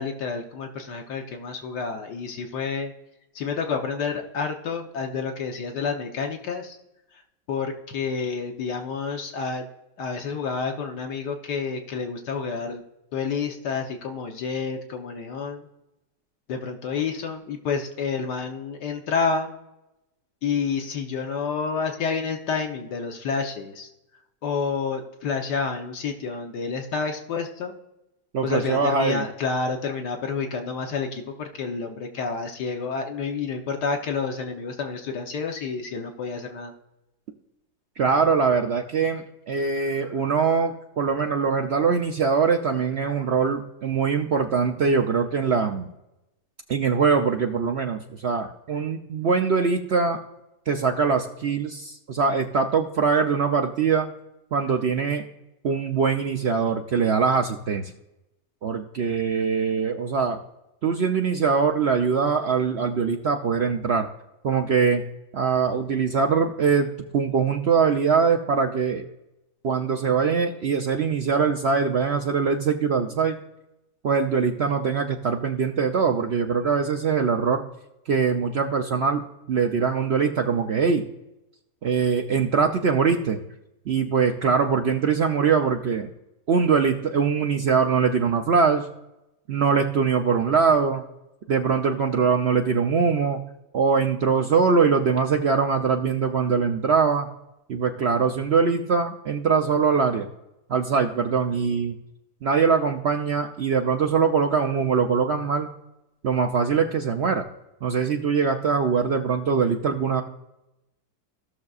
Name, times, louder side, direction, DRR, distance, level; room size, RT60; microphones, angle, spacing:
voice 1, 0.0-2.9 3.3-6.8 7.1-7.2 7.5-9.6 10.0-12.8 13.1-15.7 16.5-19.5 20.4-23.9 24.4-27.7 28.4-36.7, left 5 dB, 75° left, 4 dB, 1.5 m, -29 dB
voice 2, 28.3-29.2 38.0-45.9 46.7-50.2 50.7-54.1 54.5-55.2 55.6-57.9 58.6-60.4 60.8-64.1 64.4-65.0 65.3-69.0 69.6-73.4 74.0-77.6 78.1-81.1 81.8-83.4 83.9-86.1 86.5-88.9 89.5-91.0 91.5-93.4 93.7-97.3 97.7-100.3 100.7-102.0 102.4-105.7 106.2-107.4 107.8-110.2, right 5 dB, 75° right, 3 dB, 0.5 m, -22 dB
16.0 x 6.5 x 2.4 m, 0.91 s
omnidirectional pair, 1.9 m